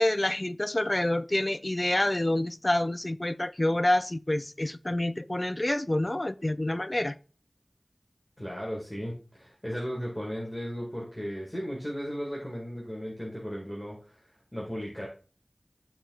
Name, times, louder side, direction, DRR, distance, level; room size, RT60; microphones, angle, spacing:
voice 1, 0.0-7.2, left 1 dB, 35° left, 0.4 m, -27 dB
voice 2, 8.4-14.2 14.5-15.1, equal, 10° left, 2.0 m, -36 dB
12.0 x 4.5 x 2.4 m
wide cardioid pair, 50°, 0 cm